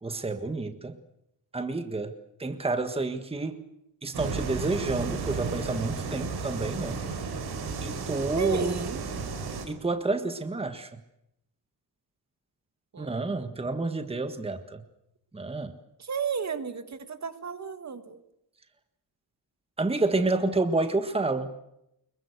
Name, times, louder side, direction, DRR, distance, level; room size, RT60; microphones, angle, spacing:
voice 1, 0.0-1.0 1.5-2.1 2.4-3.6 4.0-7.0 7.8-8.8 9.7-10.9 13.0-14.8 15.3-15.7 19.8-21.5, right 3 dB, 15° right, 8 dB, 1.6 m, -29 dB
sound 1, 4.1-9.7, right 4 dB, 70° right, 5.0 m, -33 dB
voice 2, 8.4-9.1 12.9-13.5 16.0-18.2, right 6 dB, 45° right, 10 dB, 1.8 m, -33 dB
25.5 x 22.5 x 6.7 m, 0.80 s
wide cardioid pair, 155°, 39 cm